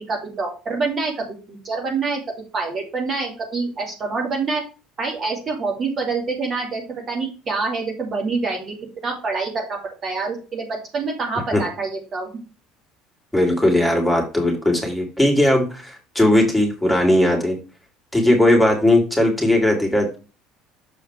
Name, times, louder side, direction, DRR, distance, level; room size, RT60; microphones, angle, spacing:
voice 1, 0.1-2.2 2.5-4.6 5.0-8.8 9.0-12.3, right 4 dB, 40° right, 0 dB, 2.9 m, -26 dB
voice 2, 13.3-17.6 18.1-20.1, left 1 dB, 5° right, 1 dB, 3.2 m, -18 dB
7.3 x 4.8 x 4.6 m, 0.33 s
hypercardioid pair, 65°, 0 cm